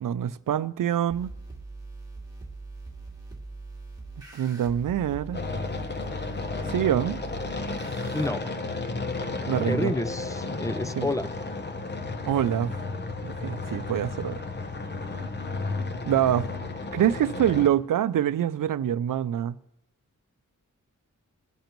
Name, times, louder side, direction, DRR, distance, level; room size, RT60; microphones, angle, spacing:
voice 1, 0.0-1.3 4.3-5.4 6.7-7.2 9.5-9.9 11.0-11.1 12.3-12.8 13.2-14.4 16.1-16.5 16.9-19.6, right 10 dB, 80° right, 0.5 m, -25 dB
sound 1, 1.1-8.3, right 3 dB, 10° right, 2.5 m, -42 dB
sound 2, 5.3-17.7, left 3 dB, 35° left, 0.8 m, -33 dB
voice 2, 9.7-11.3, left 2 dB, 10° left, 0.5 m, -29 dB
22.5 x 10.5 x 3.0 m
wide cardioid pair, 135°, 32 cm